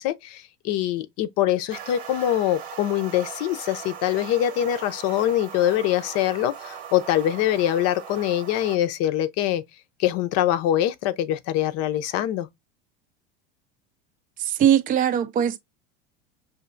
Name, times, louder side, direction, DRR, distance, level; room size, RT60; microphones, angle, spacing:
voice 1, 0.0-9.6 10.0-12.5, left 12 dB, 50° left, 0.6 m, -24 dB
sound 1, 1.7-8.8, right 8 dB, 80° right, 1.0 m, -39 dB
voice 2, 14.4-15.6, right 10 dB, 25° right, 0.5 m, -20 dB
5.6 x 2.7 x 2.5 m
hypercardioid pair, 105°, 32 cm